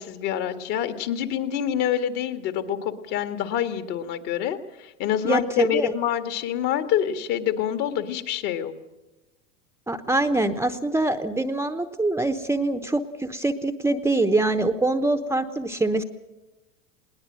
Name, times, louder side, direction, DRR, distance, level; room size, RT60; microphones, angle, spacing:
voice 1, 0.0-8.7, left 10 dB, 55° left, 8 dB, 2.0 m, -26 dB
voice 2, 5.2-5.9 9.9-16.0, right 2 dB, 5° right, 7 dB, 0.9 m, -24 dB
21.0 x 18.5 x 7.6 m, 1.0 s
hypercardioid pair, 110°, 37 cm